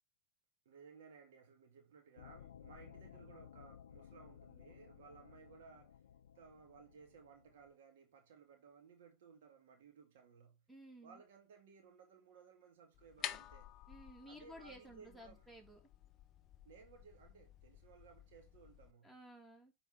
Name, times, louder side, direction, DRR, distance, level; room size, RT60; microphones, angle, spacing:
voice 1, 0.7-6.0 6.4-10.6 11.0-13.7 14.3-15.5 16.6-19.1, right 6 dB, 80° right, 1.9 m, -60 dB
sound 1, 2.2-7.7, left 9 dB, 90° left, 0.4 m, -58 dB
voice 2, 10.7-11.2 13.9-15.8 19.0-19.7, equal, 5° right, 2.9 m, -55 dB
sound 2, 12.9-18.9, left 11 dB, 40° left, 0.6 m, -51 dB
9.0 x 4.5 x 4.2 m
hypercardioid pair, 105°, 0 cm